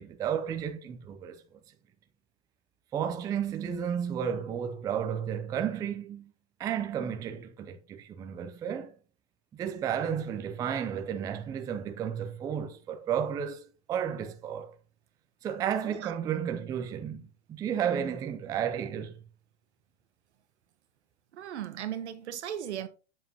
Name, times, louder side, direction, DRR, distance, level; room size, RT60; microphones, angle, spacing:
voice 1, 0.0-1.6 2.9-6.3 6.6-8.9 9.5-14.7 15.4-19.2, right 8 dB, 10° right, 0.4 m, -32 dB
voice 2, 21.3-22.9, right 10 dB, 80° right, 1.2 m, -37 dB
7.5 x 7.3 x 2.8 m
hypercardioid pair, 135°, 34 cm